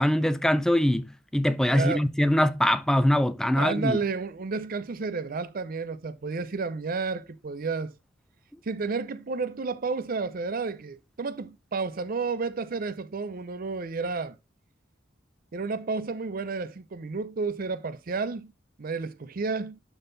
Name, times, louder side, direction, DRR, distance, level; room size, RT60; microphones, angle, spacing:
voice 1, 0.0-4.0, left 1 dB, 5° left, 0.4 m, -23 dB
voice 2, 1.7-2.0 3.6-7.9 8.7-14.3 15.5-18.5 18.8-19.8, right 4 dB, 50° right, 0.5 m, -31 dB
12.0 x 4.0 x 3.9 m
head